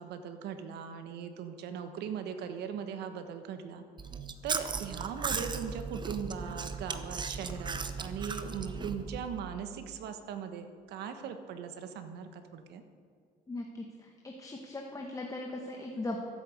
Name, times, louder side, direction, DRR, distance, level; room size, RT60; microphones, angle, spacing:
voice 1, 0.0-3.8 4.4-12.8, right 7 dB, 80° right, 8 dB, 1.3 m, -39 dB
Chewing mastication, 4.0-9.3, right 5 dB, 25° right, 0.9 m, -37 dB
voice 2, 13.5-13.9 14.2-16.2, left 2 dB, 20° left, 1 dB, 1.3 m, -38 dB
13.5 x 8.5 x 7.9 m, 2.2 s
cardioid pair, 110°, 17 cm